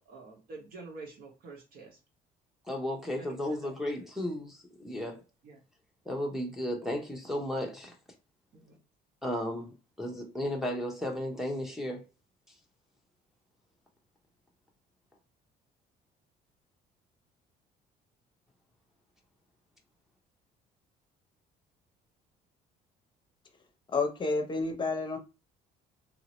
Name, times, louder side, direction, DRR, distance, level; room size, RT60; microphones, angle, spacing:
voice 1, 0.0-1.9 3.5-3.7 5.5-5.6, right 3 dB, 65° right, 1.3 m, -47 dB
voice 2, 2.7-5.2 6.1-7.9 9.2-12.0, left 1 dB, ahead, 0.8 m, -34 dB
voice 3, 23.9-25.2, left 3 dB, 30° left, 0.8 m, -30 dB
3.0 x 2.7 x 3.0 m
cardioid pair, 110°, 17 cm